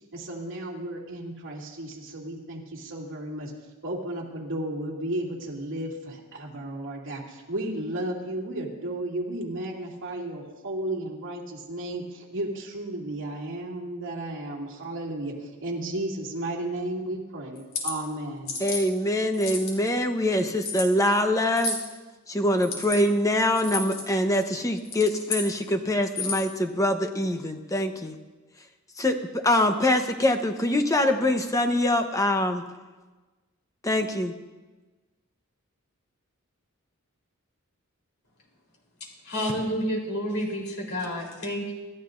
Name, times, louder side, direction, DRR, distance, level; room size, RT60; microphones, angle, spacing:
voice 1, 0.1-3.5 3.8-18.5, right 1 dB, 60° right, -2 dB, 2.8 m, -33 dB
sound 1, 17.5-17.9 18.5-18.8 19.3-19.9 20.6-20.9 21.6-21.8 22.6-23.0 23.6-24.0 24.8-25.5 26.0-26.5, left 4 dB, 70° left, 3.2 m, -31 dB
voice 2, 18.6-21.8 22.3-28.2 29.0-32.6 33.8-34.3, left 1 dB, 15° left, 5 dB, 1.0 m, -24 dB
voice 3, 39.2-41.7, equal, 90° left, -2 dB, 3.7 m, -29 dB
26.0 x 13.5 x 2.6 m, 1.2 s
head